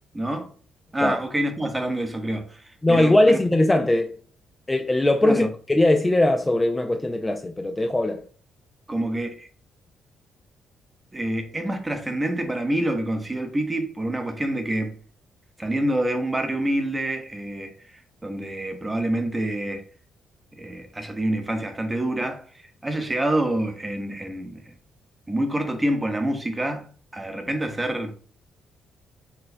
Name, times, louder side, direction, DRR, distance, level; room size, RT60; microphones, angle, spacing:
voice 1, 0.1-0.5 0.9-2.6 2.9-3.4 5.2-5.5 8.9-9.5 11.1-15.0 15.6-17.7 18.2-19.8 20.5-24.7 25.3-26.9 27.1-28.1, right 1 dB, 15° right, 0.7 m, -27 dB
voice 2, 2.8-4.1 4.7-8.2, left 1 dB, 15° left, 0.3 m, -20 dB
4.3 x 2.2 x 2.5 m
cardioid pair, 90°, 0 cm